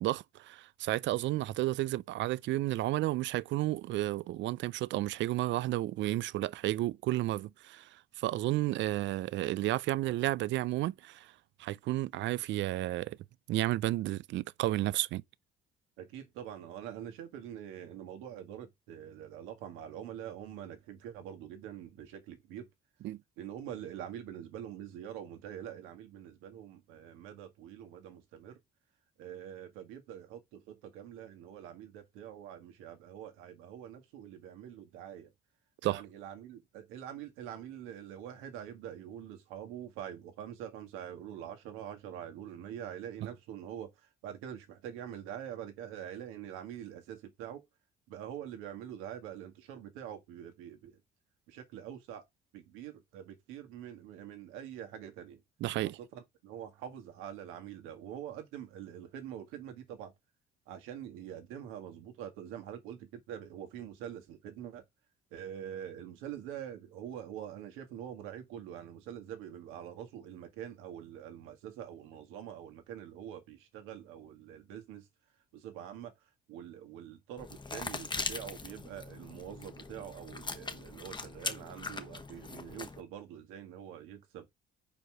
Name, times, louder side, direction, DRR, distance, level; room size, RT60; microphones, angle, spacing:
voice 1, 0.0-7.9 8.2-11.3 11.6-13.2 13.5-15.2 23.0-23.2 35.8-36.0 55.6-56.0, right 16 dB, 65° right, 0.4 m, -32 dB
voice 2, 16.0-22.7 23.4-28.6 29.2-35.3 35.8-47.7 48.1-51.0 51.5-52.2 52.5-55.4 55.7-60.1 60.7-64.8 65.3-75.1 75.5-76.1 76.5-84.5, right 10 dB, 85° right, 1.7 m, -45 dB
sound 1, 77.4-83.0, left 3 dB, 20° left, 1.2 m, -41 dB
5.0 x 4.6 x 6.0 m
supercardioid pair, 65°, 21 cm